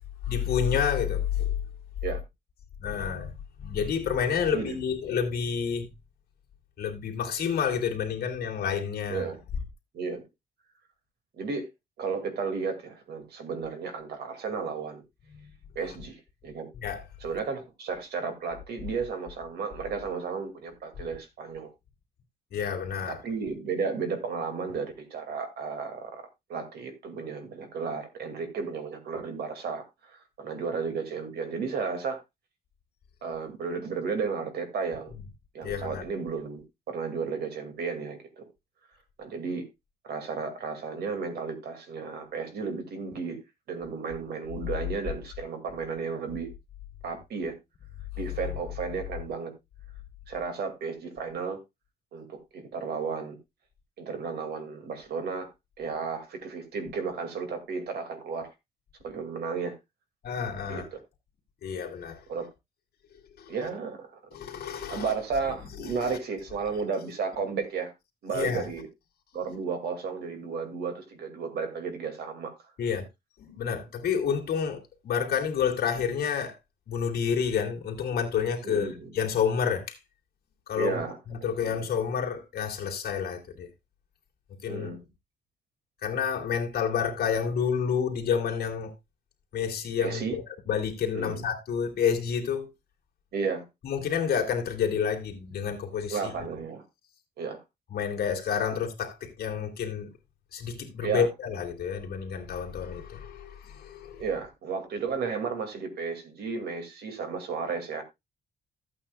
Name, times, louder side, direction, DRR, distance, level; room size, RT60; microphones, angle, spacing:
voice 1, 0.3-1.5 2.8-5.9 6.8-9.3 16.8-17.0 22.5-23.2 35.6-36.0 60.2-60.9 61.6-62.2 63.4-63.6 64.3-65.1 65.8-66.2 68.3-68.7 69.3-69.5 72.8-73.1 73.4-76.6 76.9-78.9 79.1-80.0 80.7-81.0 81.3-83.7 84.6-84.9 86.0-88.9 89.5-90.4 90.7-92.7 93.8-96.3 97.9-100.1 100.5-104.2, left 7 dB, 65° left, 2.5 m, -29 dB
voice 2, 11.4-11.7 12.0-15.0 15.8-16.7 17.2-21.7 23.1-32.2 33.2-35.1 35.5-38.4 39.2-39.6 40.0-43.4 43.7-46.5 47.0-47.5 48.2-49.5 50.3-51.6 52.1-53.4 54.0-55.5 55.8-58.5 59.0-59.7 60.7-61.0 62.3-62.5 63.5-64.1 64.9-67.9 68.2-68.9 69.3-72.5 78.6-79.2 80.7-81.8 84.7-85.0 90.0-90.4 91.1-91.4 93.3-93.6 96.1-96.8 97.4-97.6 101.0-101.3 104.2-108.0, right 5 dB, 70° right, 2.3 m, -33 dB
14.0 x 8.7 x 2.3 m
wide cardioid pair, 175°, 17 cm